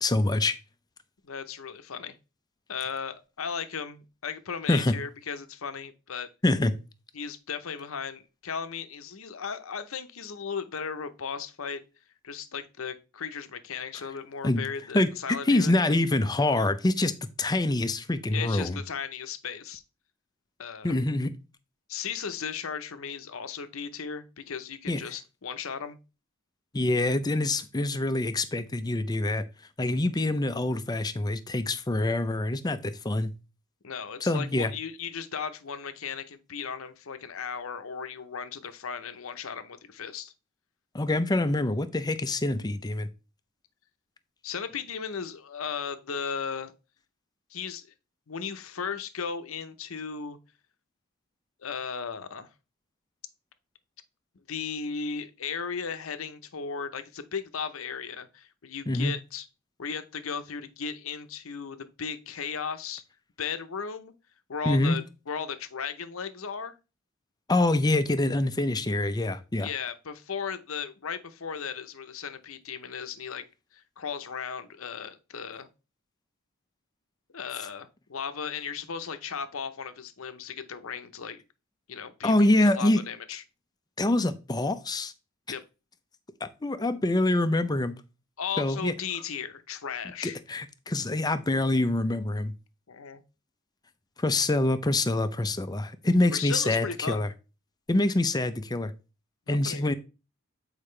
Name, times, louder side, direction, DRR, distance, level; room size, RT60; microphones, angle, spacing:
voice 1, 0.0-0.5 4.7-4.9 6.4-6.7 14.4-14.6 14.9-15.1 15.4-17.1 17.4-18.8 20.8-21.3 24.9-25.0 26.7-29.4 29.8-33.3 34.2-34.7 40.9-43.1 58.9-59.1 64.7-65.0 67.5-69.7 82.2-83.0 84.0-85.1 86.4-87.9 88.6-88.9 90.2-92.5 94.2-97.3 97.9-98.9 99.5-99.9, left 2 dB, 20° left, 0.5 m, -25 dB
voice 2, 1.2-2.2 2.7-6.3 7.1-11.8 12.2-15.7 18.3-19.8 20.6-21.0 21.9-26.0 33.8-40.3 44.4-46.7 47.5-47.9 48.3-50.4 51.6-52.5 54.5-59.5 59.8-63.0 63.4-64.1 64.5-66.7 69.6-73.4 73.7-75.7 77.3-81.4 81.9-83.4 85.5-85.6 88.4-90.4 92.9-93.2 96.3-97.2 99.5-99.9, left 6 dB, 75° left, 0.7 m, -36 dB
8.5 x 4.9 x 3.2 m
head